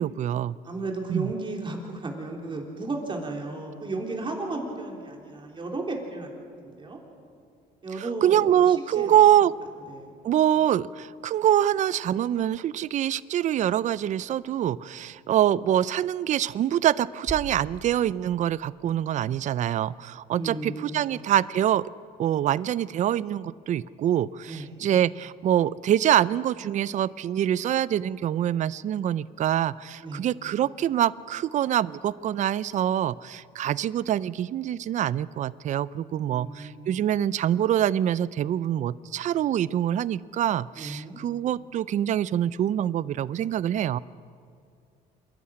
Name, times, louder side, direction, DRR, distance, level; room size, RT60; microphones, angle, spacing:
voice 1, 0.0-0.6 1.1-1.3 8.0-9.5 10.2-21.8 22.2-44.0, right 11 dB, 45° right, 20 dB, 0.4 m, -25 dB
voice 2, 0.6-6.3 6.6-7.0 7.8-9.2 9.9-10.1 20.3-21.2 24.5-24.8 30.0-30.3 36.1-37.0 40.8-41.2, right 2 dB, 30° right, 2 dB, 3.5 m, -34 dB
sound 1, 17.3-19.3, right 2 dB, 10° right, 3.2 m, -42 dB
27.0 x 11.5 x 8.7 m, 2.3 s
cardioid pair, 110°, 17 cm